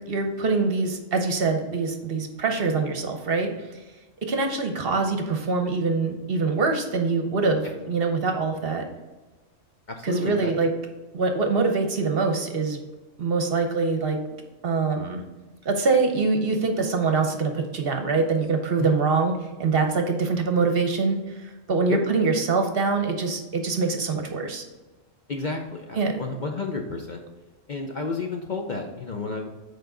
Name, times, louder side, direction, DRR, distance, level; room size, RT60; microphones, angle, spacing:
voice 1, 0.1-3.5 4.3-8.8 10.0-10.7 11.1-12.8 13.2-14.2 14.6-15.2 15.6-19.3 19.6-21.2 21.7-24.6 26.0-26.2, right 4 dB, 55° right, 4 dB, 0.9 m, -24 dB
voice 2, 9.9-10.5 18.8-19.0 21.9-22.0 25.3-27.2 27.7-29.5, left 4 dB, 50° left, 2 dB, 0.6 m, -31 dB
7.1 x 4.7 x 3.8 m, 1.2 s
omnidirectional pair, 1.3 m